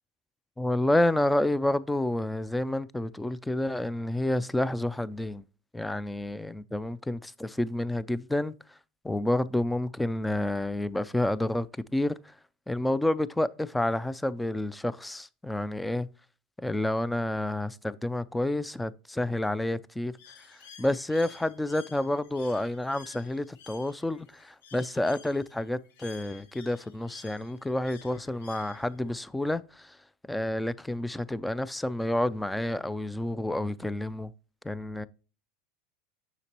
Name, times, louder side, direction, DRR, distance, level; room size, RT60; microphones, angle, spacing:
voice 1, 0.6-5.4 5.7-8.5 9.0-11.7 11.9-12.3 12.7-16.1 16.6-20.1 20.5-30.0 30.3-34.3 34.6-35.1, left 1 dB, 5° left, 0.4 m, -29 dB
Bird, 20.2-29.1, left 7 dB, 80° left, 1.0 m, -53 dB
6.8 x 5.9 x 2.9 m
hypercardioid pair, 105°, 0 cm